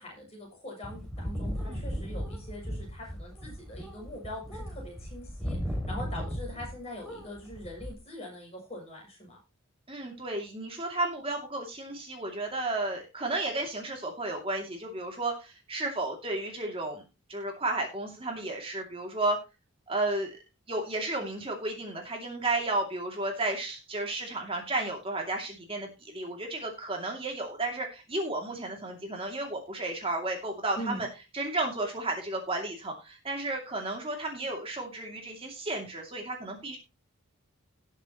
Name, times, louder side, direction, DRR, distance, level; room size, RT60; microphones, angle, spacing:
voice 1, 0.0-9.4 30.7-31.0, equal, 30° left, -1 dB, 6.7 m, -42 dB
sound 1, 0.8-6.8 7.0-7.9, equal, ahead, 2.5 m, -36 dB
voice 2, 9.9-17.0 17.3-19.4 19.9-20.4 20.7-31.1 31.3-36.8, right 2 dB, 25° right, 1 dB, 2.5 m, -33 dB
18.5 x 7.3 x 3.0 m, 0.28 s
head